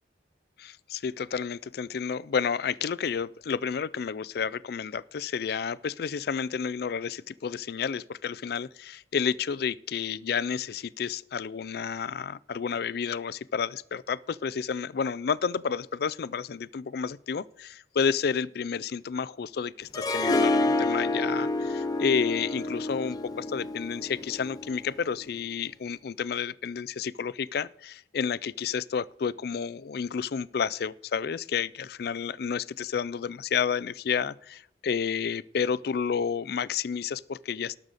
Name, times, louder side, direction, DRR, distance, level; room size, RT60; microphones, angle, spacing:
voice 1, 0.6-37.8, left 6 dB, 55° left, 0.4 m, -31 dB
Harp, 19.9-25.0, left 2 dB, 20° left, 0.7 m, -28 dB
18.5 x 6.5 x 4.1 m
head